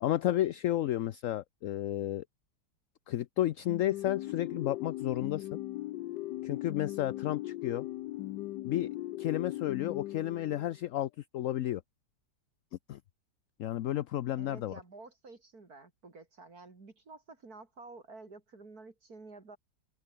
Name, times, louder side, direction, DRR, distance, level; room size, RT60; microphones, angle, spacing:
voice 1, 0.0-2.2 3.1-5.6 6.4-7.9 8.6-11.8 12.9-13.0 13.6-14.7, left 13 dB, 65° left, 0.8 m, -32 dB
sound 1, 3.7-10.9, left 16 dB, 85° left, 1.2 m, -39 dB
voice 2, 14.4-19.6, right 3 dB, 60° right, 3.6 m, -51 dB
open air
omnidirectional pair, 1.8 m